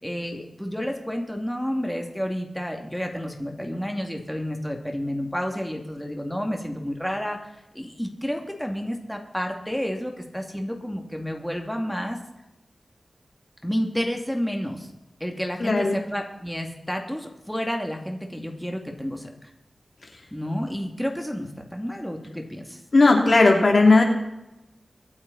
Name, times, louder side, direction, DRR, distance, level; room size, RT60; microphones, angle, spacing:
voice 1, 0.0-12.2 13.6-14.9 15.2-19.5 20.3-22.8, equal, 5° left, 2 dB, 2.6 m, -30 dB
voice 2, 15.6-16.0 22.9-24.0, left 3 dB, 60° left, 1 dB, 3.0 m, -16 dB
23.5 x 8.8 x 4.2 m, 0.93 s
cardioid pair, 45°, 0 cm